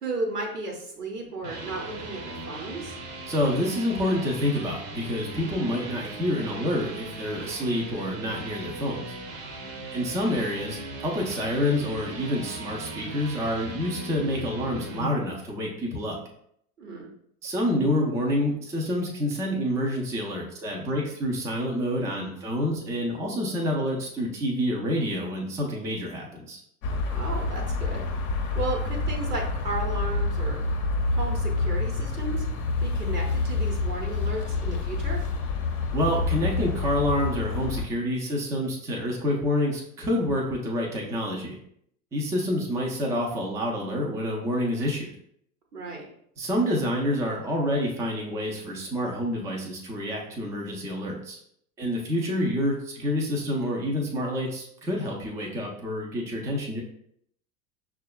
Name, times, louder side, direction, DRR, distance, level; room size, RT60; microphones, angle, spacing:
voice 1, 0.0-2.9 16.8-17.1 27.1-30.6 31.1-32.4 32.8-35.2 45.7-46.1, right 2 dB, 85° right, -1 dB, 1.0 m, -34 dB
sound 1, 1.2-15.1, right 2 dB, 30° right, 0.7 m, -39 dB
voice 2, 3.3-9.1 9.9-16.2 17.4-26.6 35.9-41.6 42.1-45.1 46.4-51.4 51.8-56.8, left 1 dB, 5° right, -1 dB, 0.4 m, -28 dB
sound 2, 26.8-37.8, left 3 dB, 40° left, 0.7 m, -28 dB
6.1 x 2.3 x 2.2 m, 0.68 s
figure-of-eight pair, 80°, 46 cm